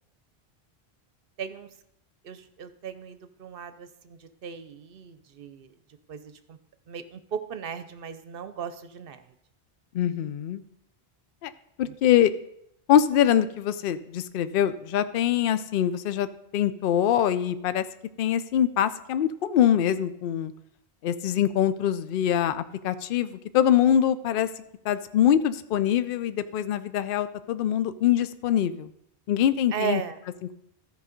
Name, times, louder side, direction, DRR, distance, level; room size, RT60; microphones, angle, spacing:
voice 1, 1.4-1.7 2.2-5.7 6.1-6.6 6.9-9.2 11.9-12.0 29.7-30.2, right 7 dB, 65° right, 11 dB, 0.8 m, -36 dB
voice 2, 9.9-10.6 11.4-11.5 11.8-12.3 12.9-16.3 16.5-17.8 18.2-20.5 21.0-24.5 24.8-28.9 29.3-30.0, left 10 dB, 65° left, 13 dB, 0.7 m, -24 dB
13.5 x 4.9 x 5.1 m, 0.77 s
omnidirectional pair, 1.1 m